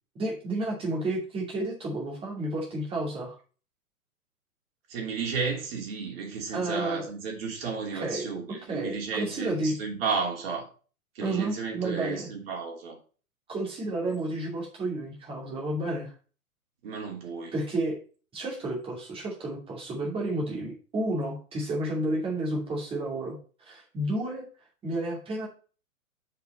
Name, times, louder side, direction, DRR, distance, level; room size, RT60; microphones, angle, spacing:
voice 1, 0.1-3.4 6.5-7.0 7.9-8.3 8.7-9.7 11.2-12.3 13.5-16.1 17.5-18.0 18.3-24.4 24.8-25.5, right 1 dB, 10° right, 2.4 m, -31 dB
voice 2, 4.9-10.6 11.1-13.0 16.8-17.5, right 5 dB, 40° right, 3.0 m, -33 dB
6.8 x 5.2 x 5.3 m
figure-of-eight pair, 120°, 44 cm